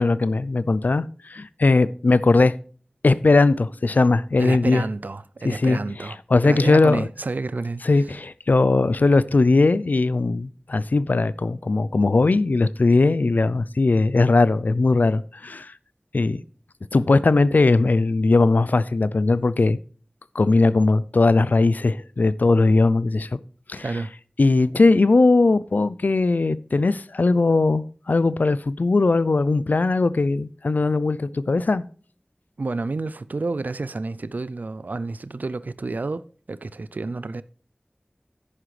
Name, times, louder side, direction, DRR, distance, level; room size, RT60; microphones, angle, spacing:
voice 1, 0.0-2.5 3.0-4.8 5.4-5.8 6.3-7.1 7.8-15.7 16.1-16.4 16.9-19.8 20.3-23.4 23.7-23.9 24.4-31.8, left 3 dB, 90° left, 0.4 m, -19 dB
voice 2, 4.4-6.2 6.4-8.1 23.8-24.1 32.6-37.4, right 3 dB, 80° right, 0.4 m, -30 dB
10.5 x 9.7 x 3.2 m
wide cardioid pair, 45°, 3 cm